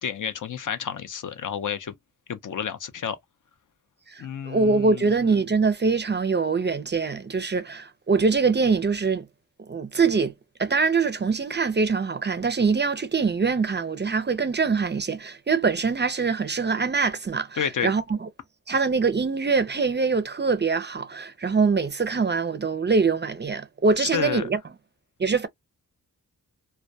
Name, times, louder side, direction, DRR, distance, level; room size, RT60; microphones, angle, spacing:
voice 1, 0.0-1.9 2.3-3.2 4.2-5.1 17.6-17.9 24.0-24.5, left 8 dB, 60° left, 0.5 m, -30 dB
voice 2, 4.1-9.3 9.7-10.3 10.6-18.3 18.7-24.6 25.2-25.5, right 4 dB, 30° right, 0.4 m, -23 dB
2.2 x 2.1 x 2.6 m
cardioid pair, 65°, 36 cm